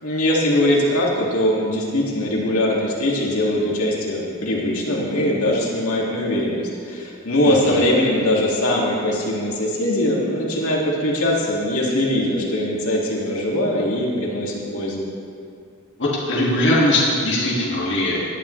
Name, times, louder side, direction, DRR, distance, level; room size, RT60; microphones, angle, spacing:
voice 1, 0.0-15.1, left 1 dB, 70° left, -4 dB, 2.2 m, -21 dB
voice 2, 7.4-7.8 16.0-18.2, left 1 dB, 55° left, -6 dB, 2.1 m, -20 dB
18.0 x 11.0 x 3.2 m, 2.4 s
head